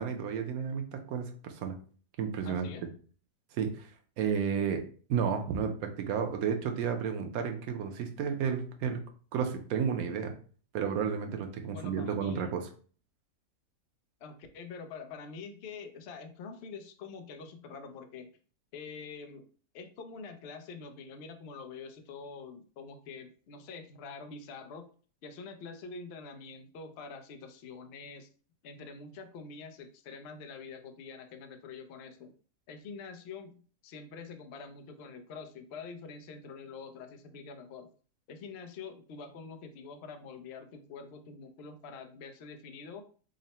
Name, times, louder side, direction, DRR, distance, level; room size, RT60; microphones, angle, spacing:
voice 1, 0.0-1.8 2.2-2.7 3.5-3.9 4.2-9.0 9.3-10.4 10.7-12.7, right 7 dB, 70° right, 5 dB, 1.0 m, -32 dB
voice 2, 2.4-2.9 11.7-12.5 14.2-18.3 18.7-19.4 19.7-24.8 25.2-28.3 28.6-32.3 32.7-37.9 38.3-43.0, left 5 dB, 90° left, 7 dB, 0.5 m, -46 dB
3.7 x 2.1 x 4.1 m, 0.41 s
omnidirectional pair, 1.8 m